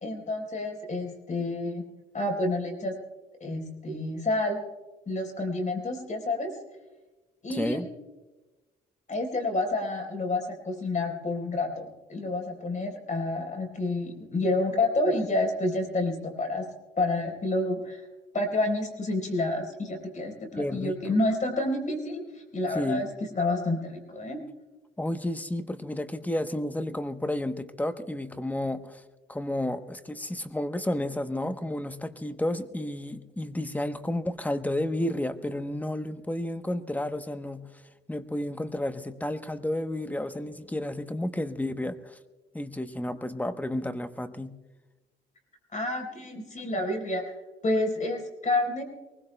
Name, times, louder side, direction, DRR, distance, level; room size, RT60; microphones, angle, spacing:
voice 1, 0.0-1.8 2.1-2.9 3.4-4.6 5.1-6.5 7.4-7.8 9.1-16.7 17.0-18.0 18.3-23.1 23.4-24.4 45.7-47.2 47.6-48.8, left 2 dB, 40° left, 3 dB, 4.0 m, -29 dB
voice 2, 7.5-7.9 20.6-21.0 22.7-23.1 25.0-29.0 29.3-37.7 38.1-42.2 42.5-44.6, left 1 dB, 10° left, 10 dB, 0.9 m, -31 dB
23.5 x 20.5 x 2.2 m, 1.2 s
cardioid pair, 90°, 20 cm